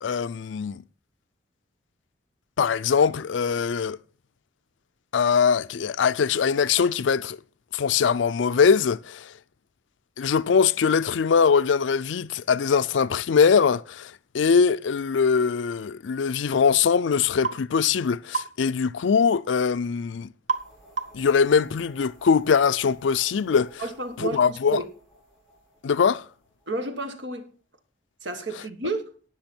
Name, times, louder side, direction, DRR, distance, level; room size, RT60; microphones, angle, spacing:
voice 1, 0.0-0.8 2.6-4.0 5.1-7.4 7.7-9.3 10.2-20.3 21.1-23.7 24.2-24.8 25.8-26.2, left 6 dB, 85° left, 0.4 m, -22 dB
sound 1, 17.4-17.6 18.3-18.6 20.5-20.7 21.0-21.3, right 5 dB, 40° right, 0.9 m, -28 dB
sound 2, 20.5-27.4, equal, ahead, 5.5 m, -55 dB
voice 2, 23.8-24.9 26.7-27.5 28.2-29.0, right 3 dB, 75° right, 1.6 m, -31 dB
18.0 x 6.2 x 4.4 m
head